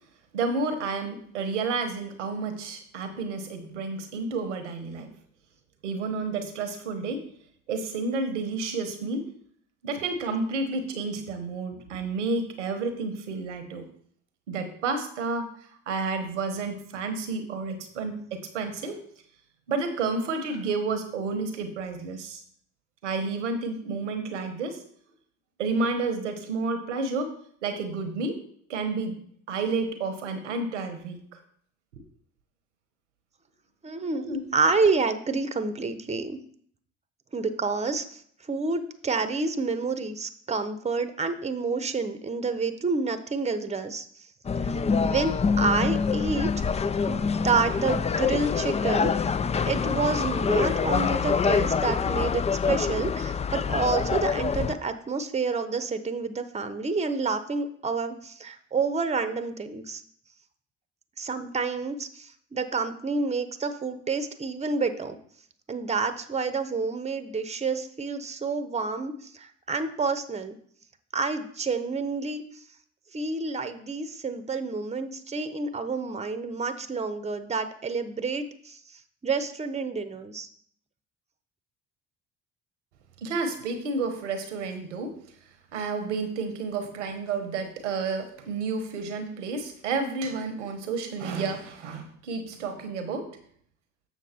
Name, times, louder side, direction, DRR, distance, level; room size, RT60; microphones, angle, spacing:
voice 1, 0.3-5.1 5.8-7.2 7.7-9.3 9.8-13.9 14.5-15.5 15.9-19.0 19.7-22.4 23.0-24.8 25.6-27.3 27.6-28.4 28.7-29.2 29.5-31.4 34.0-34.4 83.2-85.2 85.7-93.3, right 4 dB, 90° right, 7 dB, 1.1 m, -30 dB
voice 2, 33.8-34.2 34.5-36.4 37.3-38.2 38.5-44.0 44.6-44.7 45.0-46.5 46.7-49.1 49.6-60.0 61.2-65.2 65.7-70.6 71.1-72.4 73.1-78.8 79.2-80.5, right 4 dB, 20° right, 11 dB, 0.9 m, -29 dB
sound 1, 44.5-54.7, left 5 dB, 20° left, 0.4 m, -26 dB
7.2 x 6.0 x 4.3 m, 0.62 s
hypercardioid pair, 55°, 35 cm